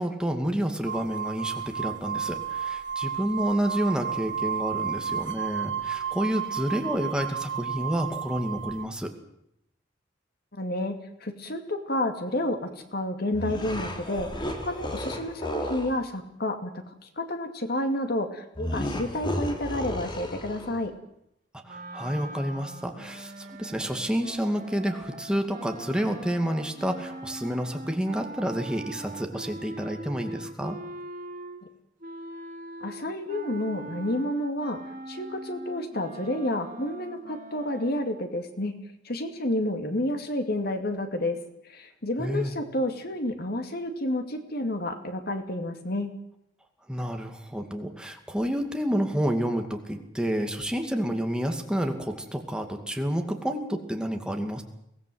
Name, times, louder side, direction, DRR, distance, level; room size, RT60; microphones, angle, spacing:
voice 1, 0.0-9.1 21.6-30.8 42.2-42.5 46.9-54.6, equal, 5° right, 4 dB, 2.4 m, -29 dB
sound 1, 0.9-8.8, right 8 dB, 70° right, 2.2 m, -32 dB
voice 2, 10.5-11.0 11.2-20.9 32.8-34.8 35.1-38.7 39.0-41.4 41.7-46.1, left 1 dB, 55° left, 7 dB, 2.4 m, -30 dB
sound 2, 13.3-16.0 18.6-20.9, left 1 dB, 25° left, 3.2 m, -33 dB
sound 3, 21.6-31.7 32.0-37.9, right 2 dB, 45° right, 3.0 m, -42 dB
23.5 x 18.0 x 7.9 m, 0.78 s
head